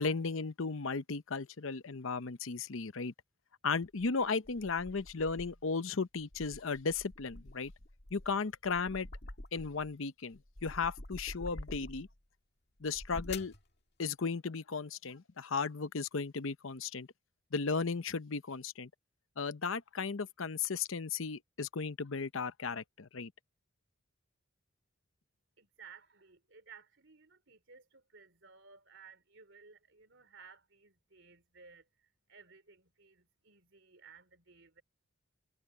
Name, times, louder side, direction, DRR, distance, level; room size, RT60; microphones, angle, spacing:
voice 1, 0.0-3.1 3.6-7.7 8.1-9.1 9.5-12.1 12.8-13.5 14.0-17.1 17.5-18.9 19.4-23.3, left 4 dB, 70° left, 0.8 m, -35 dB
sound 1, 3.8-5.7 6.2-9.9 10.3-12.2 12.8-13.6, left 2 dB, 50° left, 2.1 m, -48 dB
voice 2, 25.6-31.8 32.3-34.8, right 5 dB, 60° right, 3.7 m, -58 dB
head